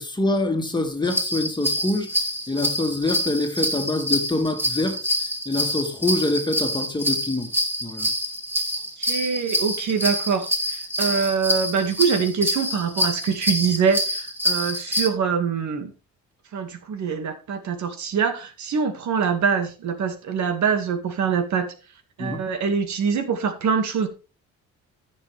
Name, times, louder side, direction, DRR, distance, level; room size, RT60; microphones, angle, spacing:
voice 1, 0.0-2.1 2.5-5.0 5.5-7.5 7.8-8.1 22.2-22.4, left 2 dB, 15° left, 2.3 m, -25 dB
sound 1, 1.1-15.1, equal, 5° right, 2.9 m, -26 dB
voice 2, 9.0-15.9 16.5-21.7 22.2-24.1, right 6 dB, 70° right, 2.2 m, -24 dB
14.5 x 6.9 x 3.5 m
cardioid pair, 90°, 30 cm